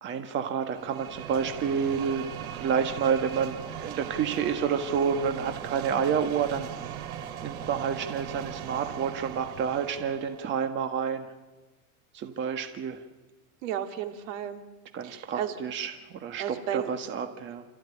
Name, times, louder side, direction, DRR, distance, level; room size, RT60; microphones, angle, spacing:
voice 1, 0.0-7.0 7.4-11.3 12.1-13.0 14.9-17.6, right 7 dB, 25° right, 6 dB, 1.5 m, -29 dB
sound 1, 0.6-10.5, right 9 dB, 85° right, 3.3 m, -39 dB
voice 2, 13.6-14.6 15.0-15.5 16.4-16.9, right 10 dB, 65° right, 7 dB, 3.0 m, -33 dB
29.5 x 14.5 x 9.9 m, 1.2 s
supercardioid pair, 155°, 42 cm